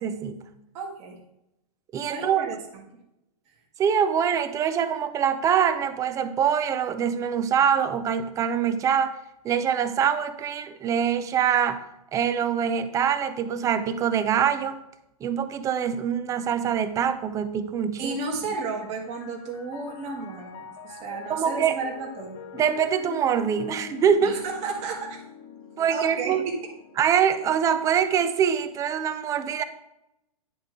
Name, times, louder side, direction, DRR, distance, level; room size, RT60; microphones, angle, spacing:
voice 1, 0.0-0.4 1.9-2.5 3.8-9.2 9.4-11.8 12.1-14.8 15.2-18.2 21.3-21.8 22.5-24.4 25.8-26.4 27.0-29.6, right 8 dB, 15° right, 11 dB, 0.4 m, -24 dB
voice 2, 0.7-1.2 2.1-2.8 18.0-22.4 24.2-25.2 25.9-26.6, right 4 dB, 35° right, 0 dB, 1.6 m, -33 dB
Piano, 18.8-28.3, left 6 dB, 50° left, 1.2 m, -44 dB
10.0 x 3.6 x 4.8 m, 0.85 s
hypercardioid pair, 130°, 20 cm